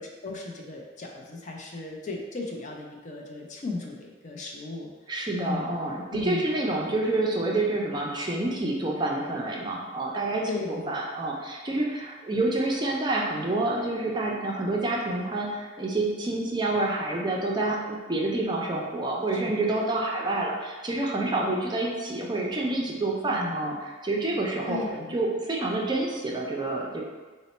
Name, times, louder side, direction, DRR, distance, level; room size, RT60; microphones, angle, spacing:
voice 1, 0.0-4.9 5.3-5.7 6.1-6.5 10.5-10.9 19.4-19.5 23.3-23.5 24.7-25.1, left 3 dB, 40° left, 0 dB, 0.5 m, -36 dB
voice 2, 5.1-23.8 24.0-24.8 25.1-27.0, right 2 dB, 25° right, -2 dB, 0.4 m, -28 dB
4.1 x 2.1 x 4.1 m, 1.4 s
head